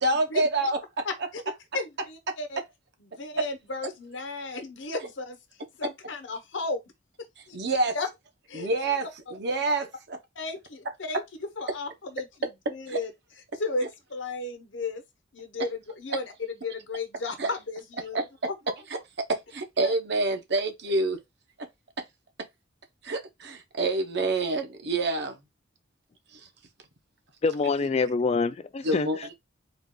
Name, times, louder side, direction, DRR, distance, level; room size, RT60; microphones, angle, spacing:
voice 1, 0.0-1.1 7.5-8.0 8.5-9.1 9.3-10.2 12.9-13.0 17.4-17.5 18.1-18.5 19.3-21.2 23.0-25.4 26.3-26.4 28.8-29.3, right 2 dB, 60° right, 0.8 m, -27 dB
voice 2, 1.0-1.4 1.7-2.6 3.0-5.4 5.8-6.8 7.5-7.6 7.9-8.1 8.5-8.7 10.3-13.1 13.5-15.0 15.3-18.2 18.4-18.5 19.8-19.9, left 3 dB, 70° left, 1.0 m, -34 dB
voice 3, 27.4-29.1, left 4 dB, 35° left, 0.3 m, -25 dB
3.9 x 2.4 x 3.7 m
head